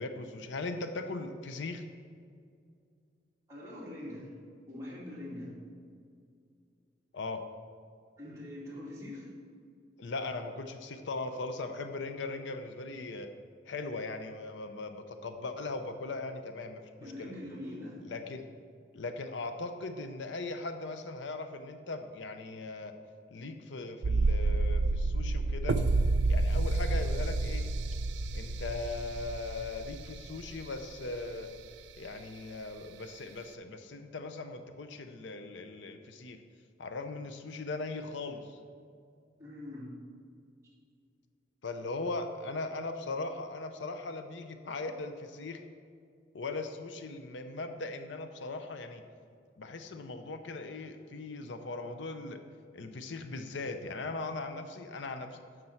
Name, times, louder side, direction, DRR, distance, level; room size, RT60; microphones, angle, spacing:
voice 1, 0.0-1.8 7.1-7.4 10.0-13.3 13.7-17.3 18.1-18.4 18.9-22.9 23.3-25.8 26.3-27.6 28.3-31.5 32.0-36.4 36.8-38.6 41.6-45.6 46.3-49.0 49.6-52.4 52.7-55.4, left 3 dB, 70° left, 7 dB, 0.6 m, -39 dB
voice 2, 3.5-4.3 4.7-5.5 8.2-9.3 17.0-18.0 39.4-40.0, left 1 dB, 15° right, -7 dB, 2.2 m, -43 dB
sound 1, 24.0-30.8 31.1-31.2, right 2 dB, 65° right, 0.4 m, -29 dB
9.6 x 6.7 x 4.4 m, 2.3 s
head